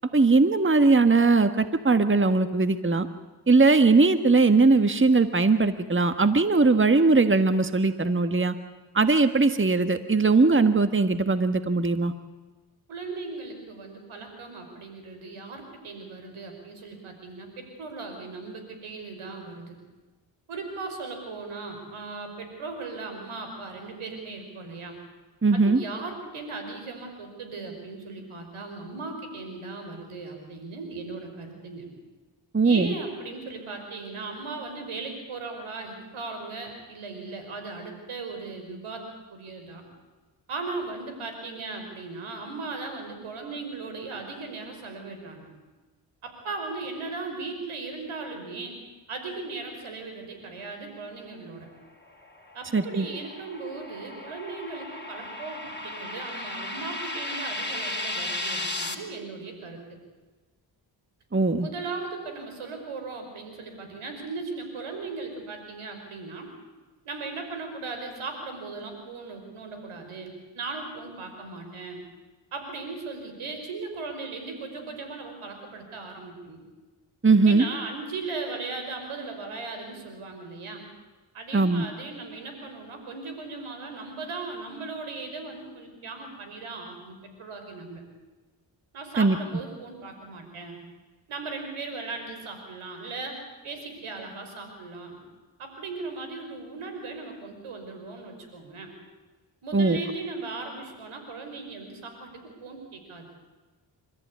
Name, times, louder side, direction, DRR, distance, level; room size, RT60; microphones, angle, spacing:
voice 1, 0.1-3.1 3.5-8.5 8.9-12.1 25.4-25.8 32.5-32.9 52.7-53.1 61.3-61.7 77.2-77.6 81.5-81.8 89.2-89.4 99.7-100.0, right 3 dB, 25° right, 10 dB, 1.6 m, -20 dB
voice 2, 12.9-19.8 20.5-25.0 25.5-31.9 32.6-39.0 39.3-39.8 40.5-45.5 46.2-48.8 49.1-51.7 52.5-59.8 61.6-66.5 67.1-72.0 72.5-76.6 77.4-80.8 81.3-88.0 88.9-90.8 91.3-95.2 95.6-98.9 99.6-102.3 102.6-103.3, right 3 dB, 85° right, 5 dB, 5.5 m, -37 dB
sound 1, 52.1-58.9, left 2 dB, 20° left, 3.6 m, -35 dB
28.0 x 14.0 x 9.6 m, 1.3 s
supercardioid pair, 45°, 49 cm